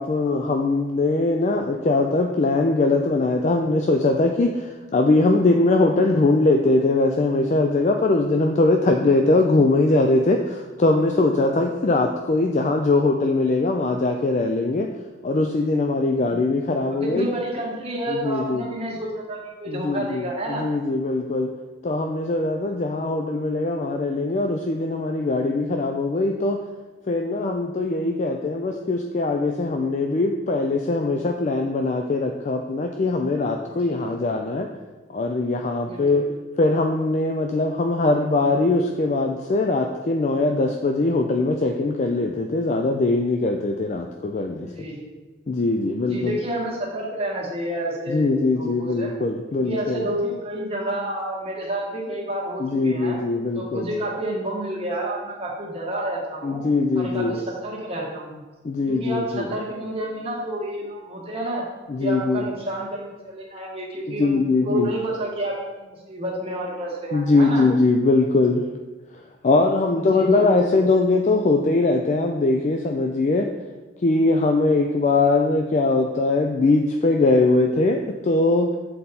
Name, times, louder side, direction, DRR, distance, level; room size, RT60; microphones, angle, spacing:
voice 1, 0.0-14.9 15.2-17.3 18.1-18.7 19.7-21.5 21.8-26.6 27.1-34.7 35.1-36.2 36.6-44.7 45.5-46.4 48.1-50.0 52.6-53.9 56.4-57.4 58.6-59.6 61.9-62.5 64.1-64.9 67.1-68.6 69.4-73.5 74.0-78.7, left 2 dB, 40° left, 4 dB, 0.4 m, -21 dB
voice 2, 16.9-20.6 33.9-34.3 35.8-36.3 44.6-45.1 46.0-49.1 49.5-53.2 53.5-56.6 56.9-58.4 58.9-61.6 62.0-67.6 70.0-70.7, right 1 dB, 30° right, -3 dB, 1.5 m, -30 dB
7.5 x 4.1 x 4.1 m, 1.2 s
head